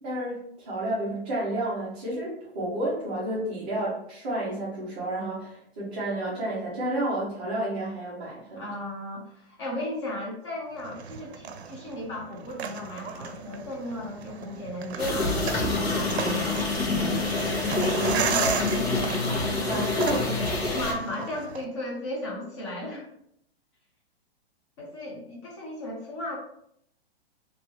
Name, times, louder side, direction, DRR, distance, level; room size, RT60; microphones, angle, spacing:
voice 1, 0.0-8.6 19.6-20.4, right 1 dB, 10° right, -9 dB, 0.5 m, -31 dB
voice 2, 8.6-17.2 17.7-19.5 19.9-20.2 20.7-23.1 24.8-26.4, left 1 dB, 25° left, -2 dB, 0.8 m, -35 dB
sound 1, 10.8-21.6, right 7 dB, 80° right, 0.5 m, -35 dB
sound 2, 15.0-20.9, left 3 dB, 75° left, 1.3 m, -26 dB
3.1 x 2.9 x 3.0 m, 0.71 s
hypercardioid pair, 175°, 32 cm